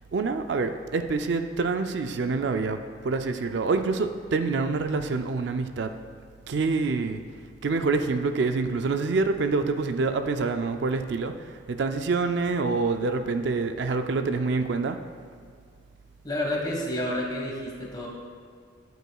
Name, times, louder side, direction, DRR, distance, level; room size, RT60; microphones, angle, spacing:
voice 1, 0.1-5.9 6.5-7.2 7.6-15.0, right 4 dB, 60° right, 8 dB, 0.4 m, -26 dB
voice 2, 16.2-18.1, left 1 dB, 20° left, -2 dB, 1.4 m, -29 dB
13.0 x 8.0 x 2.3 m, 2.1 s
head